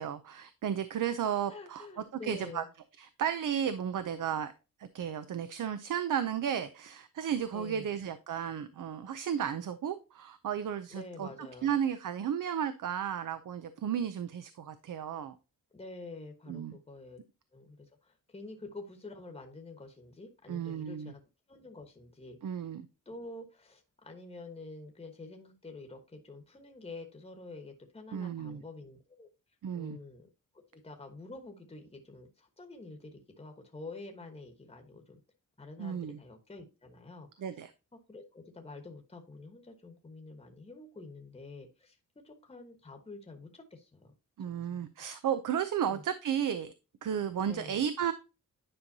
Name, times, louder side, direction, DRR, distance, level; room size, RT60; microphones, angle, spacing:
voice 1, 0.0-1.9 2.2-2.6 3.0-4.5 4.8-11.3 11.6-15.4 16.5-16.7 20.5-21.1 22.4-22.8 28.1-28.6 29.6-30.0 35.8-36.2 37.4-37.7 44.4-46.7 47.0-48.1, right 8 dB, 65° right, 12 dB, 0.6 m, -33 dB
voice 2, 1.5-2.7 7.5-7.9 10.9-11.7 15.7-17.2 17.5-21.2 21.5-22.6 23.0-29.3 29.7-30.3 30.5-35.2 35.6-37.4 38.1-44.1 44.4-44.8 45.9-46.0 47.5-47.9, left 3 dB, 15° left, 4 dB, 1.2 m, -48 dB
9.9 x 5.3 x 2.7 m, 0.30 s
wide cardioid pair, 160°, 34 cm